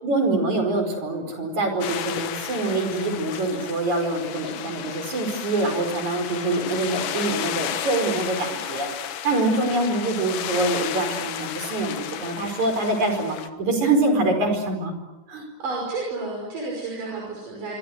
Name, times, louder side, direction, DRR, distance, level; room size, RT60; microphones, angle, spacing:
voice 1, 0.0-14.9 15.3-15.5, right 2 dB, 65° right, 5 dB, 6.2 m, -25 dB
sound 1, 1.8-13.5, left 10 dB, 90° left, 3.0 m, -33 dB
voice 2, 15.6-17.8, right 3 dB, 80° right, -2 dB, 7.2 m, -31 dB
26.0 x 25.5 x 8.1 m, 1.0 s
omnidirectional pair, 3.7 m